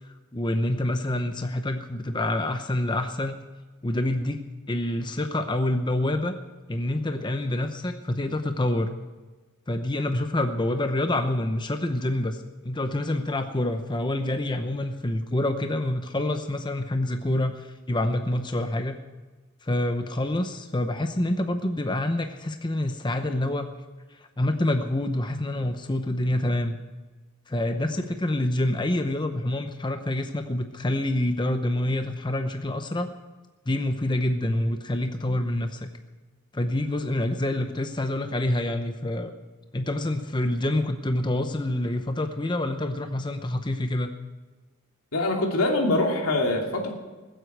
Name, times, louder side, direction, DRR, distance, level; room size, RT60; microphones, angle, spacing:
voice 1, 0.3-3.4 3.8-4.4 4.7-6.4 6.7-8.9 9.7-12.4 12.6-18.9 19.6-23.7 24.4-26.8 27.5-33.1 33.7-35.9 36.5-39.3 39.7-44.1, left 1 dB, 20° left, 7 dB, 0.7 m, -27 dB
voice 2, 45.1-46.9, left 2 dB, 85° left, 1 dB, 2.7 m, -24 dB
20.0 x 8.0 x 7.9 m, 1.3 s
head